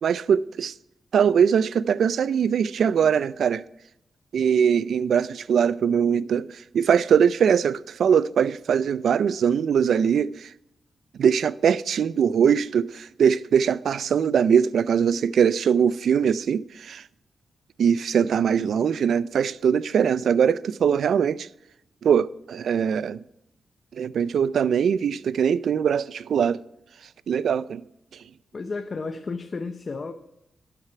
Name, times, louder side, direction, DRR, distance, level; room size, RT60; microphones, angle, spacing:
voice 1, 0.0-0.7 1.1-3.6 4.3-10.5 11.2-17.0 17.8-21.5 22.0-23.2 23.9-26.6 27.3-27.8, right 7 dB, 80° right, 0.3 m, -22 dB
voice 2, 28.5-30.1, left 4 dB, 45° left, 0.7 m, -32 dB
11.5 x 7.9 x 4.6 m
cardioid pair, 75°, 0 cm